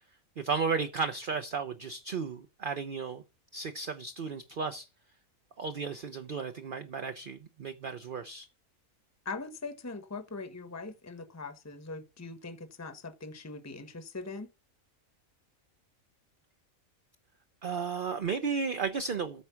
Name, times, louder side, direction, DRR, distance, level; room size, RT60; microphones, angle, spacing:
voice 1, 0.4-3.2 3.5-4.9 5.6-8.5 17.6-19.4, right 5 dB, 45° right, 0.9 m, -34 dB
voice 2, 9.2-14.5, left 3 dB, 15° left, 1.0 m, -41 dB
14.0 x 4.7 x 5.8 m
omnidirectional pair, 1.4 m